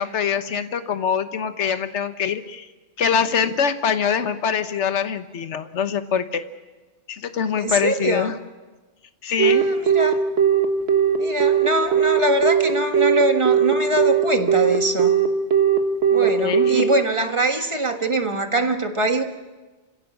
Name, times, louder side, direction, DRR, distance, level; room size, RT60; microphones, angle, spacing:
voice 1, 0.0-2.7 3.0-6.4 7.1-8.3 9.2-9.7 16.2-16.9, left 7 dB, 65° left, 10 dB, 1.4 m, -24 dB
voice 2, 7.6-8.3 9.4-10.2 11.2-15.2 16.1-19.2, right 2 dB, 25° right, 5 dB, 1.6 m, -23 dB
Telephone, 9.4-16.8, right 9 dB, 55° right, 1.8 m, -18 dB
28.0 x 16.5 x 7.3 m, 1.2 s
omnidirectional pair, 1.3 m